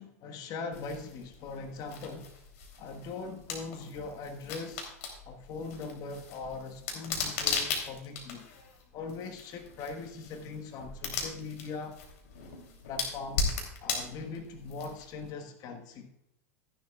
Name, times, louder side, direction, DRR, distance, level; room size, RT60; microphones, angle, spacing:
voice 1, 0.0-2.3 2.8-4.8 5.2-8.5 8.9-12.0 12.9-13.5 13.8-16.1, left 4 dB, 45° left, 1.4 m, -40 dB
sound 1, 0.7-15.3, left 5 dB, 65° left, 3.1 m, -38 dB
14.5 x 11.0 x 2.4 m
hypercardioid pair, 90°, 9 cm